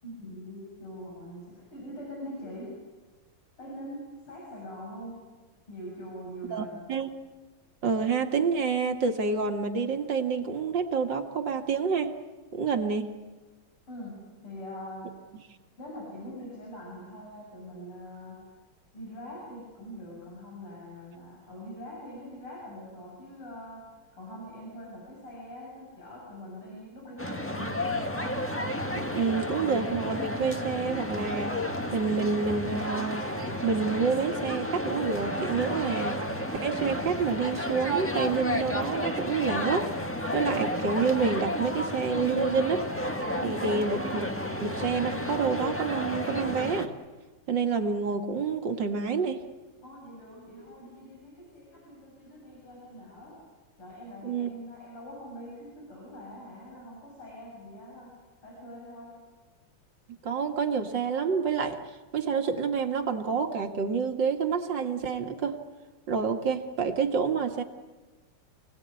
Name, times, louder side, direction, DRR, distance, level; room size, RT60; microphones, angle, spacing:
voice 1, 0.0-2.8 3.6-5.2 5.7-6.8 13.9-14.1 14.4-15.1 15.8-18.4 18.9-23.8 24.2-27.8 49.8-53.4 53.8-58.2 58.4-59.2, equal, 85° left, -4 dB, 8.6 m, -43 dB
voice 2, 6.5-7.1 7.8-12.1 12.5-13.1 29.0-31.6 31.9-33.3 33.6-36.2 36.6-39.9 40.3-42.9 43.4-46.9 47.5-49.4 54.2-54.5 60.1-61.8 62.1-65.6 66.1-67.6, right 5 dB, 55° right, 5 dB, 2.4 m, -28 dB
sound 1, 27.2-46.9, left 1 dB, 5° left, 1.4 m, -32 dB
28.5 x 19.0 x 9.8 m, 1.3 s
omnidirectional pair, 2.4 m